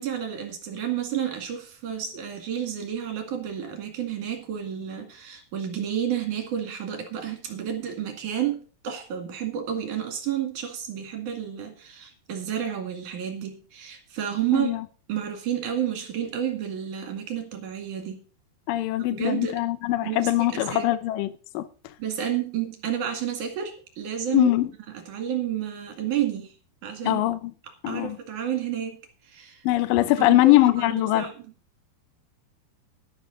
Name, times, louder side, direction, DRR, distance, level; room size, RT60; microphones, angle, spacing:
voice 1, 0.0-14.7 15.1-18.2 19.1-19.6 20.0-20.9 22.0-24.5 24.9-26.5 26.8-27.2 27.9-29.0 29.2-29.6 30.0-31.3, right 9 dB, 55° right, 3.3 m, -30 dB
voice 2, 14.5-14.8 18.7-21.7 24.3-24.7 27.0-27.5 27.8-28.2 29.6-31.3, left 16 dB, 80° left, 2.0 m, -22 dB
12.0 x 11.5 x 3.9 m
omnidirectional pair, 4.9 m